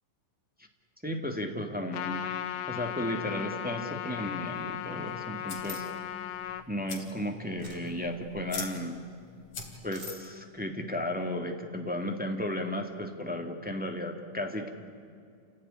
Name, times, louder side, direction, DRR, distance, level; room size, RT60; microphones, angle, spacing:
voice 1, 1.0-2.2 2.7-5.9 6.7-9.0 9.8-14.7, left 1 dB, 5° right, 3 dB, 1.0 m, -34 dB
Trumpet, 1.9-6.6, left 11 dB, 75° left, 2.6 m, -36 dB
sound 1, 4.4-10.1, left 4 dB, 45° left, 4.3 m, -46 dB
sound 2, 5.6-5.8 7.6-7.9 9.9-10.2, left 1 dB, 25° right, 3.4 m, -43 dB
28.5 x 17.5 x 10.0 m, 2.4 s
omnidirectional pair, 3.8 m